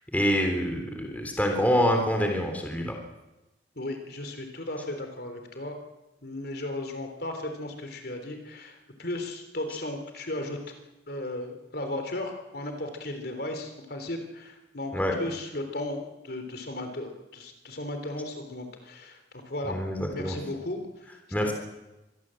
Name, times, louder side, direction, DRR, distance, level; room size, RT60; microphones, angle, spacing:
voice 1, 0.1-2.9 14.9-15.1 19.6-20.4 21.3-21.5, equal, 10° left, 3 dB, 3.5 m, -26 dB
voice 2, 3.8-5.8 6.2-10.7 11.1-19.8 20.1-21.5, left 1 dB, 55° left, 6 dB, 3.7 m, -36 dB
25.5 x 20.5 x 7.8 m, 1.0 s
head